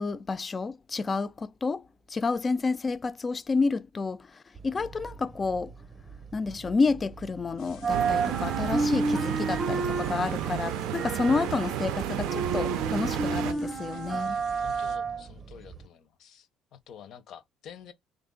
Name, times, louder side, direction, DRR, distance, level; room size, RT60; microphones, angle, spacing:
voice 1, 0.0-1.8 2.1-5.7 6.3-14.4, left 4 dB, 25° left, 0.3 m, -29 dB
sound 1, 4.6-7.4 7.7-15.9, right 4 dB, 25° right, 0.7 m, -31 dB
sound 2, 7.6-15.0, left 2 dB, 80° left, 1.1 m, -49 dB
sound 3, 7.9-13.5, right 12 dB, 85° right, 0.4 m, -32 dB
voice 2, 14.6-17.9, left 8 dB, 65° left, 0.8 m, -49 dB
3.5 x 2.5 x 3.7 m
cardioid pair, 115°, 0 cm